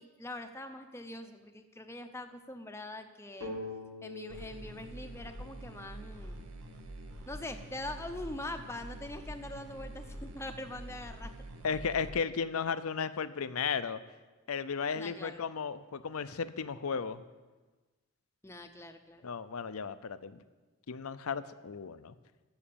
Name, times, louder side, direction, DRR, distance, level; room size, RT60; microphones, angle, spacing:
voice 1, 0.0-3.5 4.0-6.4 7.3-11.3 15.0-15.4 18.4-19.3, left 1 dB, 10° left, 7 dB, 0.6 m, -43 dB
sound 1, 3.4-7.1, left 2 dB, 65° right, 2.3 m, -46 dB
sound 2, 4.3-12.1, right 1 dB, 85° right, 1.2 m, -46 dB
voice 2, 11.6-14.0 14.5-17.2 19.2-20.4 20.9-22.1, left 6 dB, 70° left, 14 dB, 0.6 m, -35 dB
14.5 x 6.3 x 6.9 m, 1.3 s
head